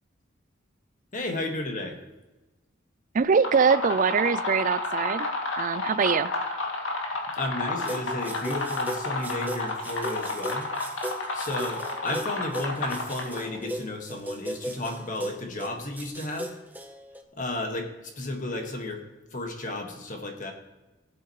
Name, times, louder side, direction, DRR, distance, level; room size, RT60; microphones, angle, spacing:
voice 1, 1.1-2.0 7.3-10.7 11.3-16.5 17.4-19.0 19.3-20.5, left 2 dB, 40° left, 3 dB, 1.7 m, -33 dB
voice 2, 3.1-5.3 5.6-6.3, right 5 dB, 40° right, 16 dB, 0.4 m, -23 dB
sound 1, 3.2-13.6, left 2 dB, 75° left, 2.1 m, -31 dB
sound 2, 7.8-17.2, right 1 dB, 10° right, 0.9 m, -37 dB
16.5 x 8.7 x 3.1 m, 1.1 s
head